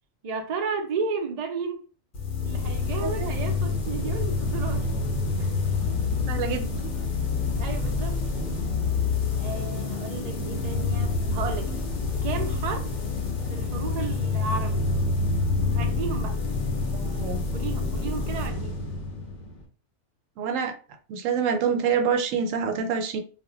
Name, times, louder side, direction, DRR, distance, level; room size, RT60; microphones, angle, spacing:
voice 1, 0.2-1.9 2.4-4.9 5.4-5.5 7.6-8.2 9.4-11.7 12.2-12.9 13.5-14.8 15.8-16.4 17.5-18.8, right 4 dB, 60° right, 0.4 m, -33 dB
sound 1, 2.1-19.7, left 4 dB, 50° left, 0.5 m, -27 dB
voice 2, 6.3-6.7 16.9-17.4 20.4-20.7 21.1-23.2, right 6 dB, 80° right, 0.9 m, -26 dB
2.2 x 2.1 x 3.7 m
omnidirectional pair, 1.3 m